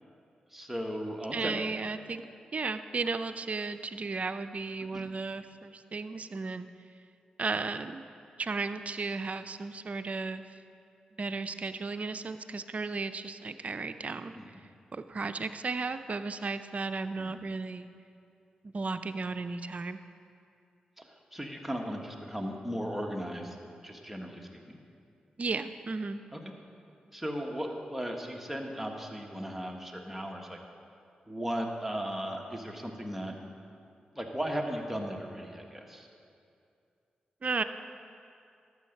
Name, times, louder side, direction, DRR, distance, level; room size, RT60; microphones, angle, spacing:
voice 1, 0.5-1.6 4.9-5.0 14.4-14.5 17.2-17.3 21.0-21.1 21.3-23.5 23.8-24.8 26.3-26.4 27.1-30.6 31.3-33.3 34.1-36.1, equal, 5° right, 1 dB, 1.6 m, -36 dB
voice 2, 1.3-2.2 2.5-6.7 7.4-8.0 8.4-10.6 11.2-14.6 14.9-17.9 18.7-20.0 25.4-26.2 37.4-37.6, right 4 dB, 50° right, 10 dB, 0.5 m, -34 dB
12.0 x 7.9 x 5.3 m, 2.5 s
supercardioid pair, 40°, 3 cm